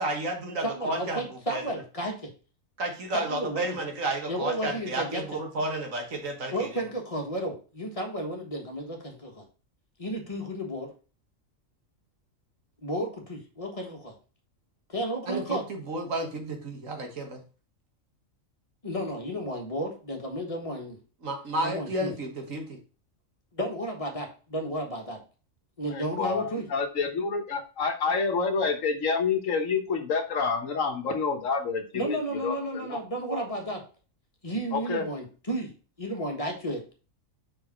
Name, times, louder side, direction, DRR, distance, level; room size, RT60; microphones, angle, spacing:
voice 1, 0.0-1.2 1.5-1.6 2.8-6.8 15.3-17.4 21.2-22.8, right 1 dB, 75° right, 4 dB, 1.8 m, -32 dB
voice 2, 0.6-2.3 3.1-3.7 4.3-5.2 6.5-9.4 10.0-10.9 12.8-14.1 14.9-15.6 18.8-21.0 21.6-22.1 23.5-25.2 25.8-26.6 31.9-33.8 34.4-35.7 36.0-36.8, right 1 dB, 25° left, 2 dB, 1.5 m, -32 dB
voice 3, 25.9-32.5 32.8-33.0 34.7-35.1, left 5 dB, 70° left, 6 dB, 1.4 m, -28 dB
5.5 x 4.9 x 4.3 m, 0.36 s
omnidirectional pair, 1.4 m